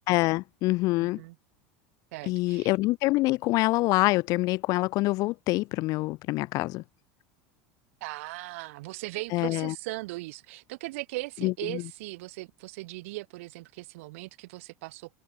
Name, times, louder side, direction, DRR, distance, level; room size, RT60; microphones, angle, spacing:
voice 1, 0.1-1.2 2.3-6.8 9.3-9.7 11.4-11.9, left 20 dB, 55° left, 0.9 m, -26 dB
voice 2, 1.0-1.4 2.1-2.7 8.0-15.1, right 21 dB, 75° right, 3.4 m, -38 dB
supercardioid pair, 115°, 7 cm